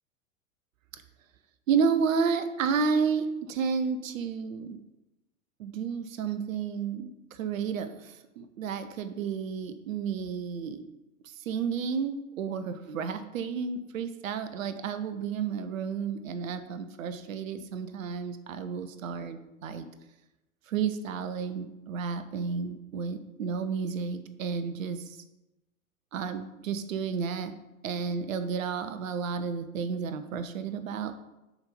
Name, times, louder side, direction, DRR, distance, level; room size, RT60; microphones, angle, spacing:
voice 1, 1.7-4.8 5.6-7.1 7.4-10.8 11.5-19.9 20.7-25.0 26.1-27.5 27.8-31.1, right 6 dB, 65° right, 10 dB, 0.8 m, -31 dB
6.8 x 4.5 x 5.2 m, 0.97 s
figure-of-eight pair, 85°, 42 cm